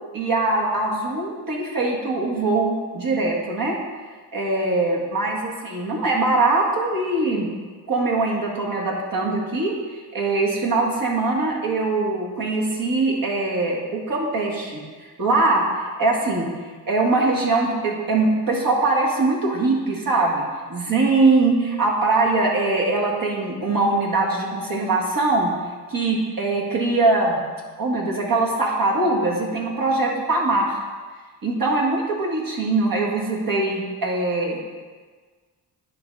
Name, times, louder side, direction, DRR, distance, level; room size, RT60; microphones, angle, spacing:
voice 1, 0.1-3.8 4.3-7.5 7.9-9.7 10.1-16.5 16.9-20.4 20.7-25.5 25.9-27.4 27.8-30.8 31.4-34.8, right 2 dB, 55° right, -2 dB, 1.9 m, -22 dB
10.5 x 3.7 x 5.4 m, 1.5 s
cardioid pair, 80°, 41 cm